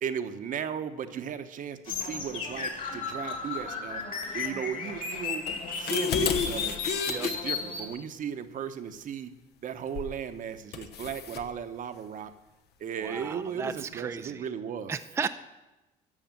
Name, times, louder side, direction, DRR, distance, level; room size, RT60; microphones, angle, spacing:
voice 1, 0.0-4.0 4.3-5.4 5.8-6.7 7.2-9.3 9.6-12.3 12.8-14.9, right 8 dB, 50° right, 9 dB, 1.0 m, -36 dB
sound 1, 1.9-7.9, left 5 dB, 55° left, 2.6 m, -34 dB
sound 2, 5.5-7.3 9.9-10.2 10.7-11.5, left 7 dB, 75° left, 1.1 m, -30 dB
voice 2, 13.0-14.4 14.9-15.3, right 5 dB, 15° right, 9 dB, 0.4 m, -34 dB
12.5 x 7.0 x 7.6 m, 1.1 s
cardioid pair, 110°, 17 cm